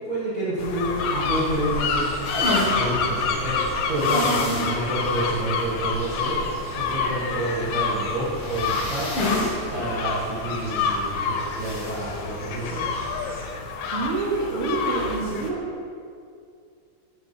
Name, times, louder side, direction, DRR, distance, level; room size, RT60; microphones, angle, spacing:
voice 1, 0.0-2.1 2.7-6.4 6.7-9.1 9.7-12.9, right 1 dB, 70° right, -10 dB, 0.7 m, -28 dB
sound 1, 0.6-15.5, left 5 dB, 85° left, 1.9 m, -28 dB
sound 2, 1.3-13.4, equal, 35° left, 0.8 m, -39 dB
sound 3, 2.2-2.8 4.0-4.7 5.1-5.2 5.6-5.7 8.4-9.6 9.9-10.0 11.6-11.9, left 1 dB, 60° left, 1.6 m, -27 dB
voice 2, 13.9-15.6, right 3 dB, 90° right, -4 dB, 1.2 m, -27 dB
6.0 x 4.3 x 4.1 m, 2.4 s
omnidirectional pair, 3.4 m